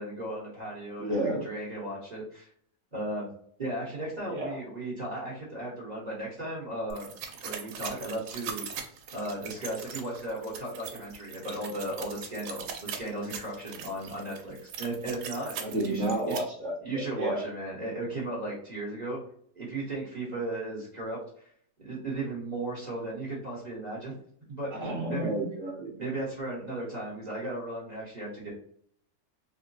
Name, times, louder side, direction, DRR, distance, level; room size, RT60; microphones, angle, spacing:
voice 1, 0.0-2.5 2.9-3.3 3.6-7.1 7.4-8.7 9.1-15.5 15.8-16.4 16.8-19.2 19.5-21.5 21.8-24.2 24.5-24.8 25.1-25.3 25.9-28.5, right 1 dB, 30° right, -6 dB, 1.1 m, -36 dB
voice 2, 1.0-1.5 4.3-4.6 15.6-17.4 24.7-26.0, right 1 dB, 5° left, -5 dB, 0.9 m, -31 dB
sound 1, 6.9-16.4, right 7 dB, 85° right, 1.2 m, -41 dB
3.7 x 2.1 x 2.6 m, 0.62 s
omnidirectional pair, 1.7 m